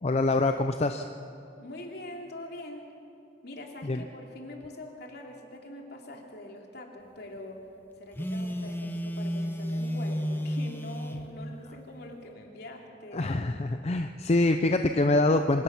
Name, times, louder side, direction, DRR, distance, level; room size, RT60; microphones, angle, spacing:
voice 1, 0.0-1.1 3.8-4.0 13.1-15.6, left 2 dB, 35° left, 7 dB, 0.5 m, -25 dB
voice 2, 1.6-2.9 3.4-7.6 8.0-13.3, left 1 dB, 60° left, 1 dB, 2.8 m, -44 dB
Telephone, 8.1-11.3, equal, 10° left, 1.1 m, -32 dB
26.0 x 17.5 x 5.9 m, 2.6 s
head